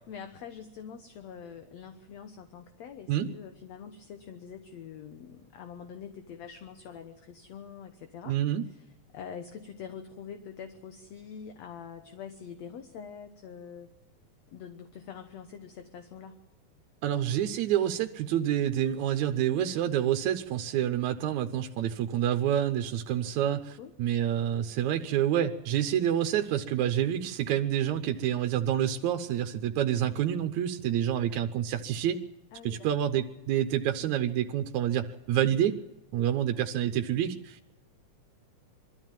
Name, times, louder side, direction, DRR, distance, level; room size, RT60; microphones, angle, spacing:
voice 1, 0.1-8.4 8.7-13.9 14.5-16.4 23.2-23.9 29.9-30.2 32.5-32.9 33.7-33.8, left 7 dB, 65° left, 7 dB, 2.2 m, -45 dB
voice 2, 8.3-8.6 17.0-32.2 32.6-35.8 36.1-37.7, right 10 dB, 75° right, 6 dB, 2.3 m, -28 dB
23.0 x 14.0 x 9.2 m, 0.96 s
omnidirectional pair, 3.5 m